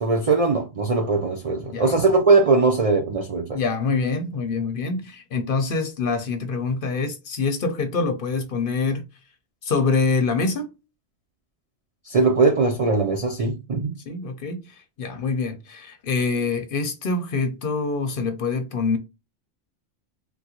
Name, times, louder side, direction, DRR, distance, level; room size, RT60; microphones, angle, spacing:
voice 1, 0.0-3.6 12.1-13.9, right 3 dB, 50° right, 0.4 m, -20 dB
voice 2, 3.5-9.0 9.6-10.7 14.1-14.6 15.0-19.0, left 4 dB, 55° left, 0.8 m, -25 dB
3.7 x 2.1 x 2.8 m
omnidirectional pair, 1.2 m